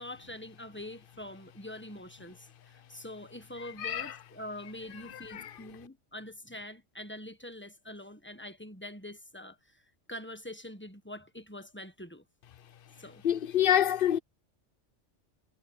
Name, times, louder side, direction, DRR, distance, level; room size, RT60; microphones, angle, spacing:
voice 1, 0.0-9.8 10.1-12.2 13.0-13.2, left 1 dB, 10° left, 1.3 m, -44 dB
voice 2, 3.8-4.1 5.3-5.5 13.2-14.2, left 10 dB, 55° left, 0.8 m, -26 dB
omnidirectional pair, 1.2 m